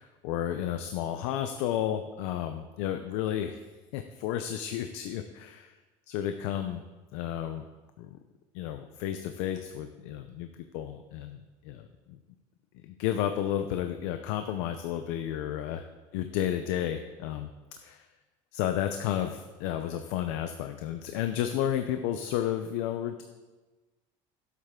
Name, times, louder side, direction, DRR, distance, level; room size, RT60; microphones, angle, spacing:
voice 1, 0.0-3.6 3.9-5.7 6.1-6.8 7.1-7.6 8.0-8.1 8.5-10.5 10.7-12.2 12.8-15.8 16.1-17.5 17.8-18.0 18.5-23.2, left 10 dB, 85° left, 7 dB, 0.7 m, -32 dB
15.5 x 8.3 x 3.8 m, 1.2 s
cardioid pair, 180°, 14 cm